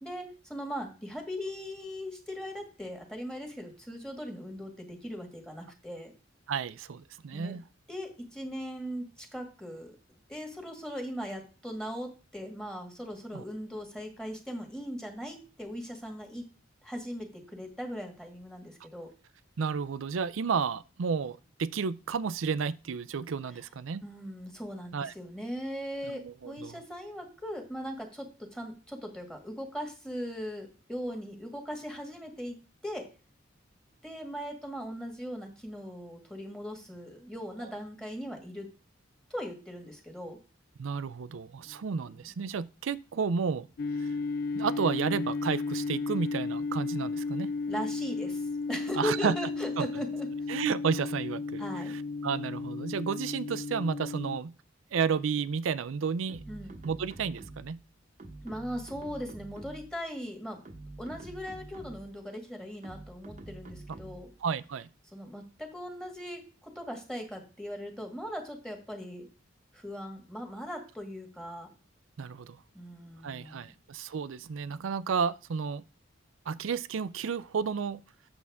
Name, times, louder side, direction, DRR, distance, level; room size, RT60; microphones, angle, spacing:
voice 1, 0.0-6.1 7.3-7.6 7.9-9.9 10.3-16.5 16.8-19.1 24.0-33.1 34.0-38.7 39.3-40.4 41.6-41.8 47.7-50.3 51.6-51.9 56.5-56.8 58.4-60.6 61.0-64.3 65.1-69.3 69.7-71.7 72.7-73.7, equal, 5° left, 1.7 m, -39 dB
voice 2, 6.5-7.6 13.3-13.4 19.6-24.0 24.9-25.1 26.0-26.8 40.8-43.7 44.0-44.1 44.5-47.5 49.0-49.3 49.8-49.9 50.5-51.6 52.2-54.5 54.9-56.4 56.8-57.8 64.4-64.9 72.2-72.6 73.2-75.8 76.5-78.0, right 6 dB, 80° right, 0.4 m, -32 dB
sound 1, 43.8-54.4, left 4 dB, 50° left, 0.3 m, -34 dB
sound 2, 56.3-57.8 58.2-60.0 60.5-62.2 62.8-64.4, right 2 dB, 40° right, 0.9 m, -47 dB
8.6 x 7.1 x 3.5 m
head